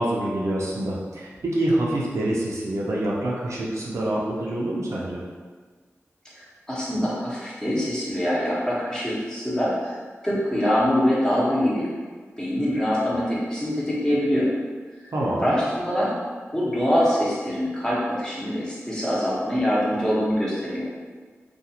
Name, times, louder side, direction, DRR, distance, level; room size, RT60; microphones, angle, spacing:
voice 1, 0.0-5.2 15.1-15.5, right 1 dB, 75° right, -5 dB, 0.5 m, -26 dB
voice 2, 6.4-10.0 10.2-11.9 12.4-14.5 15.0-15.1 15.4-16.1 16.5-20.9, equal, 15° left, -7 dB, 0.9 m, -24 dB
2.4 x 2.4 x 2.8 m, 1.5 s
cardioid pair, 50°, 5 cm